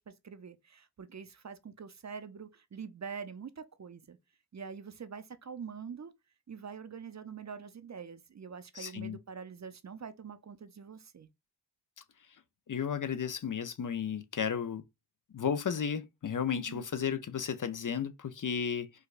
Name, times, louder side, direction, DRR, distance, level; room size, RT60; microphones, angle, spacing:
voice 1, 0.0-4.2 4.5-6.1 6.5-11.3 16.5-16.8, right 6 dB, 45° right, 0.4 m, -45 dB
voice 2, 8.8-9.2 12.7-14.8 15.3-18.9, left 7 dB, 50° left, 0.4 m, -33 dB
4.7 x 2.1 x 2.3 m
wide cardioid pair, 60°, 40 cm